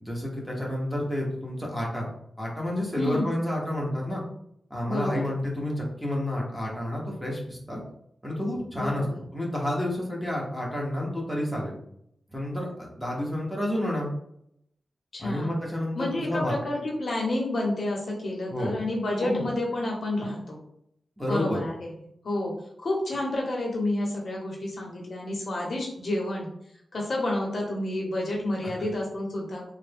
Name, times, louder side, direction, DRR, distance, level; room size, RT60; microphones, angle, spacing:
voice 1, 0.0-2.1 2.4-4.2 4.7-7.8 8.2-9.0 9.3-11.7 12.3-14.1 15.2-16.5 18.5-18.8 19.2-19.4 21.2-21.6, left 1 dB, 5° right, -3 dB, 0.9 m, -30 dB
voice 2, 3.0-3.3 4.9-5.2 8.7-9.2 15.1-15.6 15.9-20.6 21.3-21.9 22.2-22.5 22.8-26.5 26.9-29.7, left 1 dB, 50° left, -1 dB, 0.7 m, -29 dB
3.3 x 2.1 x 3.4 m, 0.73 s
wide cardioid pair, 120°, 0 cm